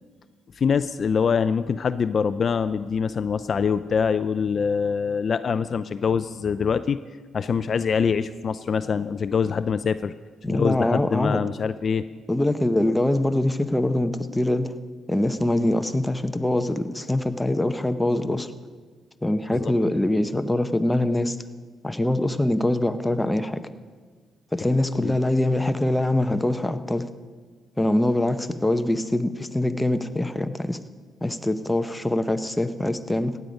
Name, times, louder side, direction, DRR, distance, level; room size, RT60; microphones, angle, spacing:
voice 1, 0.6-7.0 7.3-10.1 10.5-12.0 19.5-19.7 24.7-25.2, left 6 dB, 45° left, 13 dB, 0.4 m, -24 dB
voice 2, 10.4-11.4 12.3-14.8 15.1-18.5 19.2-21.4 21.8-23.6 24.5-27.1 27.8-30.8 31.2-33.4, left 1 dB, 10° left, 9 dB, 0.7 m, -23 dB
16.0 x 9.3 x 5.3 m, 1.5 s
cardioid pair, 90°, 0 cm